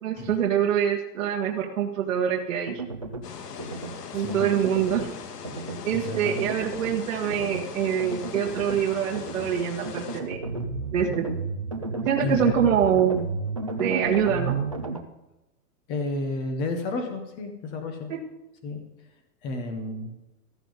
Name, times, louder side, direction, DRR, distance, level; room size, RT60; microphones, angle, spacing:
voice 1, 0.0-2.8 4.1-5.1 5.8-10.4 10.9-11.2 12.0-13.2 13.8-14.6 18.1-18.2, right 8 dB, 55° right, -1 dB, 1.7 m, -25 dB
sound 1, 2.7-3.3 3.6-3.9 4.3-5.1 5.4-5.8 6.1-6.9 7.3-7.6 8.0-8.8 9.1-9.5 9.8-15.0, right 3 dB, 25° right, 0.4 m, -32 dB
sound 2, 3.2-10.2, left 6 dB, 75° left, 1.9 m, -40 dB
voice 2, 5.9-6.4 12.2-12.5 15.9-18.1 18.6-18.8 19.4-20.1, left 2 dB, 10° left, 6 dB, 0.7 m, -31 dB
14.5 x 13.5 x 3.8 m, 0.97 s
hypercardioid pair, 170°, 47 cm